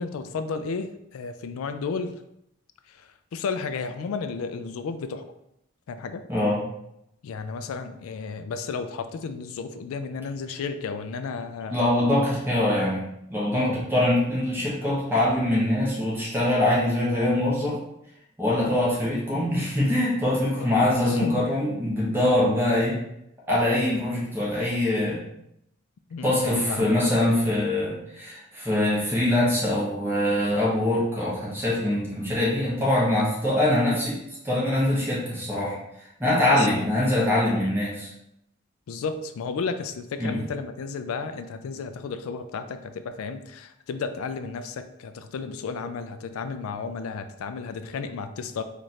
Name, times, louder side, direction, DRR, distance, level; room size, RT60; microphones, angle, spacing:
voice 1, 0.0-2.1 2.9-5.3 5.9-6.2 7.2-11.9 13.6-13.8 20.6-21.5 26.1-26.9 36.6-36.8 37.6-37.7 38.9-48.6, left 5 dB, 90° left, 9 dB, 0.3 m, -33 dB
voice 2, 6.3-6.6 11.7-13.0 13.3-17.8 18.4-23.0 23.5-25.2 26.2-34.2 34.4-35.8 36.2-38.1 40.2-40.3, left 1 dB, 10° right, -7 dB, 1.0 m, -23 dB
3.1 x 2.5 x 4.2 m, 0.80 s
head